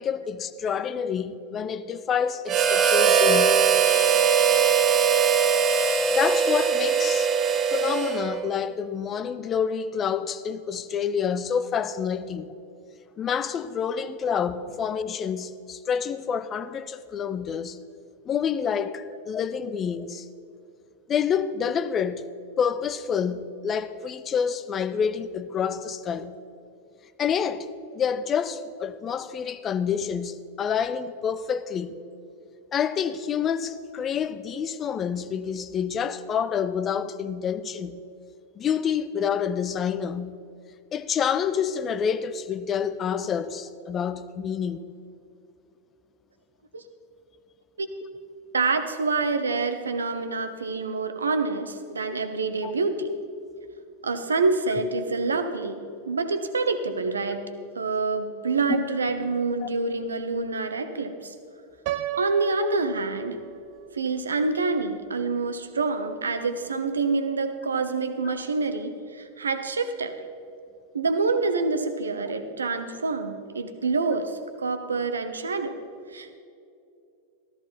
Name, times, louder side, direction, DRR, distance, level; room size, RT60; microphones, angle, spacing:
voice 1, 0.0-4.2 6.1-7.3 7.7-12.5 13.2-17.8 18.3-20.2 21.1-22.3 22.6-26.4 27.2-27.7 27.9-32.0 32.7-38.0 38.6-40.3 40.9-44.8 52.6-52.7 59.6-59.7, left 7 dB, 25° left, 0.6 m, -28 dB
Harmonica, 2.5-8.5, right 7 dB, 25° right, 1.0 m, -21 dB
voice 2, 48.5-53.1 54.0-61.3 62.2-63.4 63.9-70.2 70.9-75.8 76.1-76.4, right 3 dB, 75° right, 1.0 m, -27 dB
Piano, 61.9-63.8, right 10 dB, 50° right, 0.6 m, -33 dB
14.0 x 14.0 x 4.2 m
figure-of-eight pair, 90°, 0 cm